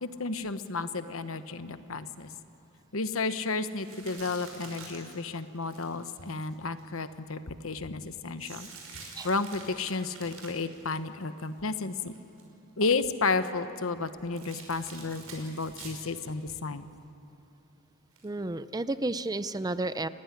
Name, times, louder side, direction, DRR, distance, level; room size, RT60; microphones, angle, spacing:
voice 1, 0.0-2.3 2.9-8.7 9.2-12.1 12.8-16.9, left 3 dB, 75° left, 11 dB, 1.1 m, -32 dB
sound 1, 3.8-7.0 8.4-11.7 12.0-12.4 14.4-16.1 16.5-16.6 18.2-18.3, right 4 dB, 90° right, 5.8 m, -47 dB
voice 2, 18.2-20.1, right 2 dB, 20° right, 13 dB, 0.5 m, -32 dB
30.0 x 15.5 x 9.9 m, 2.9 s
head